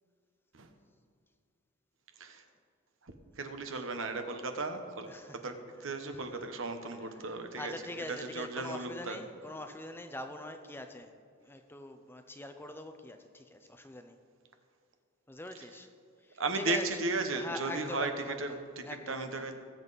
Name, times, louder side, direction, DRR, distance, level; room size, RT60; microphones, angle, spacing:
voice 1, 3.3-5.1 5.3-5.5 5.8-7.7 8.1-9.2 16.4-19.6, right 3 dB, 65° right, 7 dB, 1.1 m, -35 dB
voice 2, 5.1-5.6 5.8-5.9 7.1-11.1 11.4-14.2 15.3-15.9 16.2-17.0 17.3-19.5, left 2 dB, 10° left, 7 dB, 0.6 m, -43 dB
19.0 x 7.8 x 4.1 m, 2.3 s
head